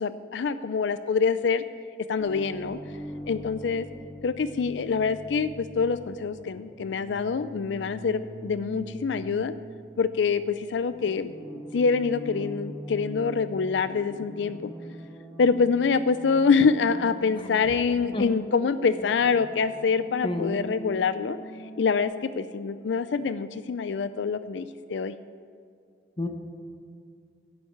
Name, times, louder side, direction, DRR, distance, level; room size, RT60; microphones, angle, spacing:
voice 1, 0.0-1.6 2.1-2.8 3.3-3.9 4.2-9.5 10.0-11.3 11.7-14.7 15.4-21.4 21.8-25.1, left 5 dB, 85° left, 13 dB, 0.4 m, -25 dB
sound 1, 2.2-22.0, equal, 15° left, 2.7 m, -43 dB
voice 2, 20.2-20.6 26.2-26.3, left 2 dB, 30° left, 6 dB, 1.1 m, -29 dB
11.0 x 8.7 x 8.5 m, 2.3 s
head